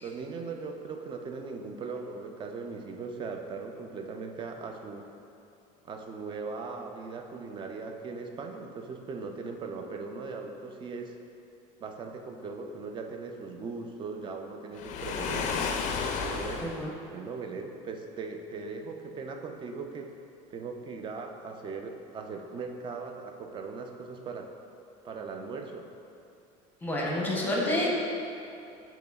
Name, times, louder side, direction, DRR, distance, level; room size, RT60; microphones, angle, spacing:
voice 1, 0.0-5.1 5.8-11.2 11.8-15.6 16.2-16.7 17.1-20.1 20.5-24.5 25.0-25.9, right 4 dB, 30° right, 4 dB, 0.4 m, -39 dB
Waves surf, 14.7-16.9, left 5 dB, 45° left, 0.4 m, -32 dB
voice 2, 26.8-27.9, left 1 dB, 10° left, -3 dB, 0.8 m, -28 dB
7.8 x 2.8 x 2.3 m, 2.8 s
supercardioid pair, 120°, 17 cm